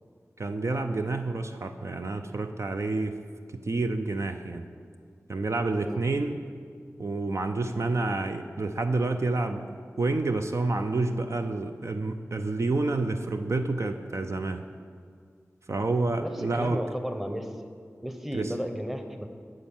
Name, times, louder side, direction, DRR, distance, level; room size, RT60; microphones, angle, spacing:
voice 1, 0.4-3.2 3.6-4.7 5.3-6.4 7.0-9.7 10.0-14.6 15.7-16.8 18.3-18.5, right 3 dB, 60° right, 6 dB, 0.5 m, -29 dB
voice 2, 16.2-17.5 18.0-19.3, equal, 5° right, 6 dB, 0.9 m, -34 dB
13.5 x 4.5 x 7.2 m, 2.1 s
wide cardioid pair, 55°, 6 cm